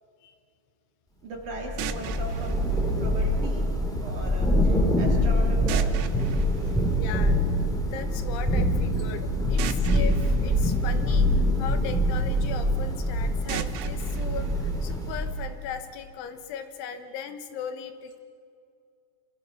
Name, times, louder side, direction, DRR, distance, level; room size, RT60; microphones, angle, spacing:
voice 1, 1.2-2.6 3.0-3.6 4.0-5.9 8.9-9.1, right 2 dB, 50° right, 0 dB, 2.6 m, -38 dB
Thunder / Rain, 1.5-15.6, equal, ahead, 1.6 m, -25 dB
sound 1, 1.8-3.8 5.7-7.7 9.6-11.8 13.5-15.5, right 11 dB, 75° right, 2.6 m, -39 dB
voice 2, 4.9-5.3 6.2-11.3 11.6-18.2, left 8 dB, 75° left, 8 dB, 3.5 m, -38 dB
28.0 x 27.5 x 5.6 m, 2.3 s
omnidirectional pair, 5.7 m